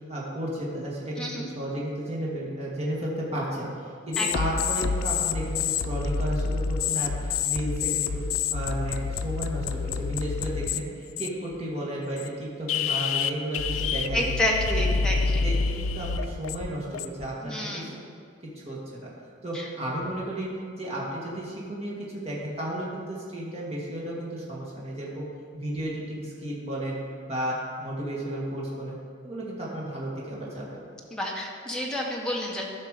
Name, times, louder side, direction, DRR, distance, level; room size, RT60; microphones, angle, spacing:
voice 1, 0.1-1.3 1.6-8.2 8.5-14.4 14.7-14.8 15.3-17.9 18.6-19.0 19.4-20.5 20.8-25.3 25.5-27.0 27.3-29.0 29.2-30.7, right 1 dB, 30° right, -5 dB, 1.9 m, -33 dB
voice 2, 1.2-1.5 4.2-4.3 14.1-15.4 17.4-17.9 19.5-19.7 31.1-32.6, left 1 dB, 5° left, -2 dB, 1.2 m, -29 dB
sound 1, 4.1-10.8 11.2-11.5 12.2-12.3 12.7-17.3, left 5 dB, 90° left, 0.4 m, -28 dB
13.5 x 5.7 x 5.0 m, 2.2 s
head